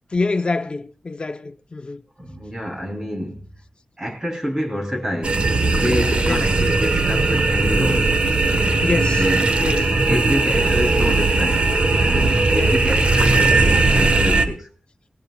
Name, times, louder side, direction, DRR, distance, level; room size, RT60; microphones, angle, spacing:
voice 1, 0.1-2.0 6.3-6.5 8.8-9.2 9.6-9.9 12.6-12.8, left 3 dB, 40° left, 0.8 m, -25 dB
voice 2, 2.2-3.5 4.0-8.1 9.1-9.6 10.1-11.7 12.0-14.7, equal, 20° right, 3.3 m, -27 dB
sound 1, 5.2-14.4, right 3 dB, 50° right, 1.3 m, -18 dB
19.5 x 16.5 x 2.4 m
wide cardioid pair, 110°, 3 cm